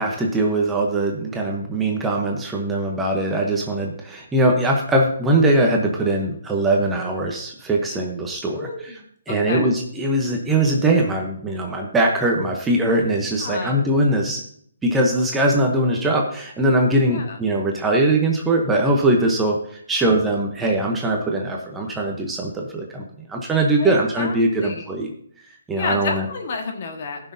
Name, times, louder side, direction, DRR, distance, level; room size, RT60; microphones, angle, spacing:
voice 1, 0.0-8.7 9.3-14.4 14.8-19.6 19.9-23.0 23.3-25.1 25.7-26.3, right 1 dB, 5° right, 0 dB, 0.9 m, -21 dB
voice 2, 8.5-9.0 9.3-9.7 13.4-13.8 17.1-17.4 23.8-24.9 25.7-27.3, left 4 dB, 40° left, 3 dB, 1.6 m, -30 dB
18.5 x 6.2 x 2.7 m, 0.63 s
hypercardioid pair, 165°, 0 cm